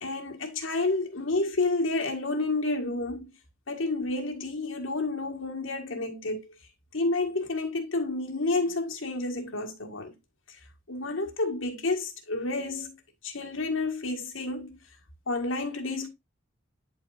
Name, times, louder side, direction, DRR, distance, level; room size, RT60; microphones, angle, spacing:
voice 1, 0.0-3.3 3.7-6.4 6.9-10.2 10.9-13.0 13.2-14.8 15.3-16.1, left 2 dB, 80° left, 1.7 m, -30 dB
10.5 x 4.2 x 2.5 m
head